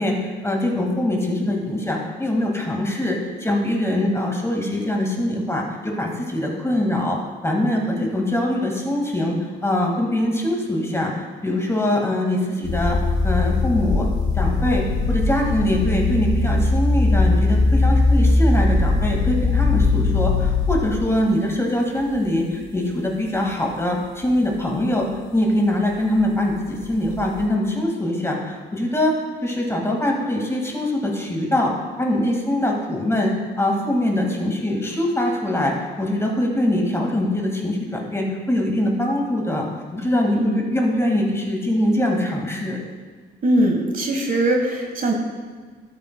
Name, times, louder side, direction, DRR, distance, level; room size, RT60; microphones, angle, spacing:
voice 1, 0.0-7.2 7.4-9.3 9.6-11.1 11.4-13.0 13.2-14.1 14.3-25.1 25.3-29.1 29.4-31.7 32.0-35.7 36.0-39.7 39.9-42.8, left 1 dB, 15° left, 0 dB, 1.8 m, -23 dB
sound 1, 12.6-21.4 22.2-22.6 23.1-23.2 26.8-27.4, left 3 dB, 55° left, 2.5 m, -20 dB
voice 2, 43.4-45.1, right 1 dB, 45° right, 2 dB, 1.3 m, -21 dB
12.5 x 8.7 x 2.2 m, 1.5 s
cardioid pair, 90°, 20 cm